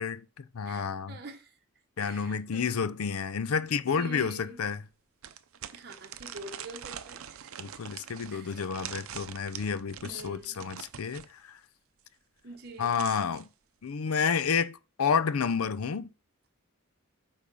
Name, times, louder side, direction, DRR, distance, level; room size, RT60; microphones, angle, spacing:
voice 1, 0.0-1.2 2.0-4.8 7.6-11.6 12.8-13.5 13.8-16.1, left 6 dB, 90° left, 0.5 m, -30 dB
voice 2, 0.6-1.6 2.0-2.9 3.6-4.6 5.7-7.8 8.3-8.6 10.0-10.6 12.4-13.0, right 2 dB, 50° right, 0.9 m, -46 dB
sound 1, 5.2-11.3 12.5-13.5, right 9 dB, 80° right, 0.6 m, -44 dB
8.4 x 3.5 x 5.3 m
head